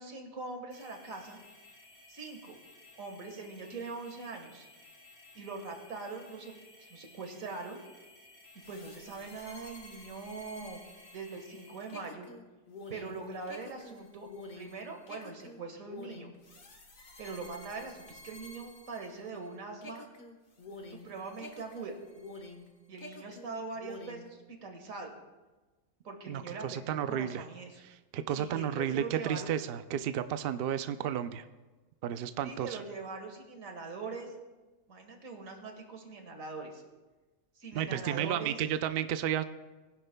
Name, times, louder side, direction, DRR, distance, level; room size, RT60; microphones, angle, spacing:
voice 1, 0.0-1.4 2.1-2.6 3.0-4.7 5.3-6.5 6.8-7.8 8.7-10.8 11.1-12.3 12.9-14.3 14.6-16.3 17.2-20.1 20.9-21.9 22.9-25.1 26.0-27.8 28.3-29.5 32.4-34.3 34.9-36.8 37.6-38.6, right 4 dB, 80° right, 4 dB, 1.9 m, -42 dB
sound 1, 0.7-12.1, left 2 dB, 60° left, 4.6 m, -57 dB
sound 2, 8.6-19.5 19.8-22.7 23.0-24.3, left 2 dB, 40° left, 1.1 m, -49 dB
voice 2, 26.3-27.4 28.1-31.4 32.0-32.8 37.7-39.4, right 9 dB, 65° right, 11 dB, 0.6 m, -32 dB
20.0 x 10.5 x 2.2 m, 1.2 s
omnidirectional pair, 1.4 m